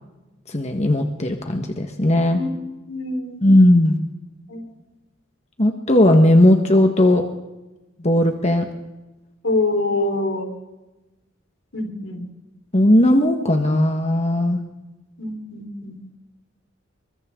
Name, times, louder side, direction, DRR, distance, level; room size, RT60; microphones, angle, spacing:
voice 1, 0.5-2.4 3.4-4.0 5.6-7.2 8.0-8.6 12.7-14.6, left 1 dB, 35° left, 4 dB, 1.6 m, -16 dB
voice 2, 2.2-2.5 2.9-3.5 4.5-4.7 9.4-10.5 11.7-12.3 15.2-16.0, left 2 dB, 80° left, 3 dB, 4.4 m, -25 dB
28.5 x 24.0 x 3.9 m, 1.1 s
head